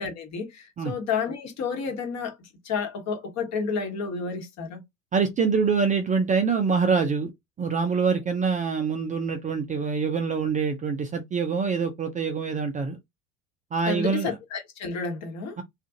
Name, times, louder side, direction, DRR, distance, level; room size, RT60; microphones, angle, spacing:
voice 1, 0.0-4.8 13.9-15.6, left 5 dB, 40° left, 1.2 m, -31 dB
voice 2, 5.1-7.3 7.6-13.0 13.7-14.3 15.6-15.7, right 5 dB, 20° right, 0.4 m, -25 dB
2.4 x 2.4 x 2.7 m
hypercardioid pair, 80°, 41 cm